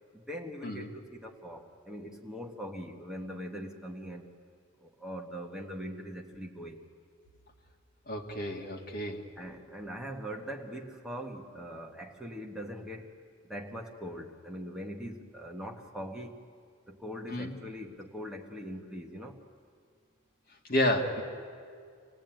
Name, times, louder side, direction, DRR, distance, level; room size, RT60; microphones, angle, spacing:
voice 1, 0.1-4.2 4.8-6.8 9.4-13.1 13.5-16.4 16.9-19.4, equal, 5° right, 0 dB, 1.6 m, -41 dB
voice 2, 8.1-9.2 17.3-17.5 20.7-21.2, left 1 dB, 45° left, 0 dB, 2.3 m, -30 dB
26.5 x 17.5 x 9.2 m, 2.3 s
head